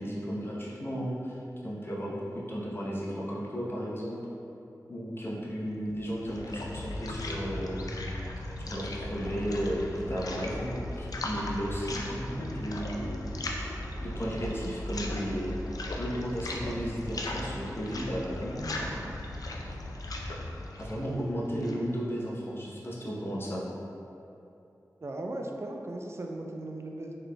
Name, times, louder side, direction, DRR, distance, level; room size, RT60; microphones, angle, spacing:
voice 1, 0.0-4.2 4.9-7.9 8.7-13.3 14.0-15.6 16.0-19.1 20.8-23.6, equal, 35° left, -5 dB, 0.8 m, -34 dB
sound 1, 5.9-21.9, left 1 dB, 65° left, 0.4 m, -37 dB
voice 2, 25.0-27.1, right 1 dB, 40° right, 1 dB, 0.4 m, -37 dB
3.9 x 3.3 x 2.2 m, 2.8 s
cardioid pair, 45°, 7 cm